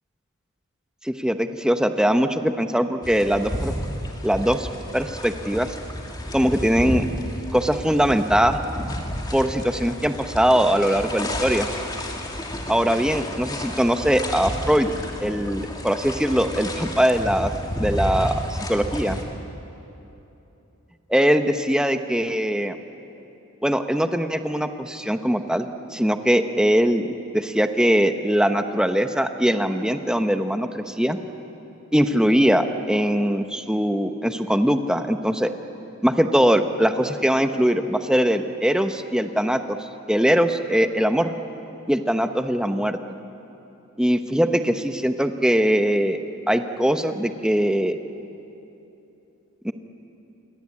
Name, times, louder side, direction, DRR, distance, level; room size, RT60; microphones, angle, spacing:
voice 1, 1.0-3.7 4.2-5.8 6.3-7.0 7.5-8.6 9.3-11.7 12.7-14.9 15.2-17.5 17.8-19.2 21.1-22.8 23.6-31.2 31.9-35.5 36.0-39.8 40.1-41.3 41.9-43.0 44.0-46.2 46.5-48.0 49.6-49.7, equal, 5° right, 7 dB, 1.0 m, -21 dB
sound 1, 3.0-19.2, equal, 20° left, 2.5 m, -31 dB
28.0 x 23.0 x 8.6 m, 3.0 s
head